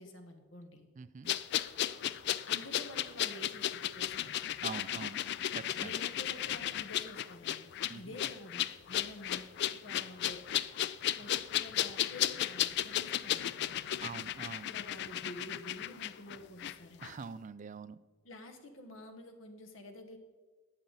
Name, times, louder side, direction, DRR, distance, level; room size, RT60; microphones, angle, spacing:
voice 1, 0.0-0.9 2.4-4.4 5.8-7.7 7.9-8.6 8.9-9.4 9.8-10.4 11.2-14.0 14.6-17.2 18.2-20.2, left 1 dB, 75° left, 6 dB, 1.3 m, -49 dB
voice 2, 1.0-1.3 4.6-5.2 5.5-5.9 7.9-8.2 14.0-14.7 17.0-18.0, right 5 dB, 40° right, 16 dB, 0.3 m, -44 dB
sound 1, 1.3-16.7 17.0-17.1, left 11 dB, 60° left, 0.3 m, -35 dB
11.5 x 8.0 x 4.0 m, 1.4 s
head